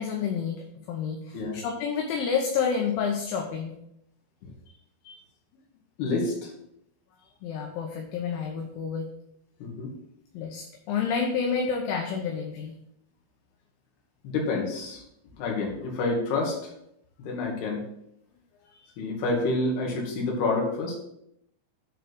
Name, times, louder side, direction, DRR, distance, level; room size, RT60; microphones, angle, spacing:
voice 1, 0.0-3.7 7.4-9.1 10.3-12.7, left 6 dB, 80° left, 1 dB, 3.0 m, -29 dB
voice 2, 6.0-6.5 9.6-9.9 14.2-15.0 15.4-16.6 17.2-17.8 19.0-21.0, left 3 dB, 60° left, -1 dB, 3.4 m, -28 dB
9.4 x 3.8 x 6.0 m, 0.78 s
omnidirectional pair, 5.9 m